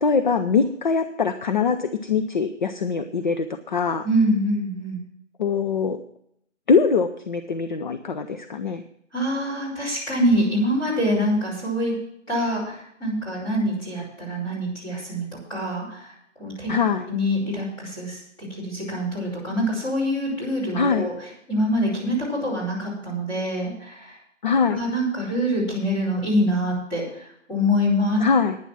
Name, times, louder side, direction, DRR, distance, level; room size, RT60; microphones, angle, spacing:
voice 1, 0.0-4.0 5.4-6.0 6.7-8.8 16.7-17.1 20.7-21.1 24.4-24.8 28.2-28.6, left 5 dB, 40° left, 8 dB, 0.7 m, -22 dB
voice 2, 4.0-5.0 9.1-11.9 12.3-16.7 17.1-24.2 24.7-28.2, equal, 10° left, -6 dB, 5.4 m, -25 dB
11.0 x 9.9 x 6.0 m, 0.74 s
figure-of-eight pair, 155°, 37 cm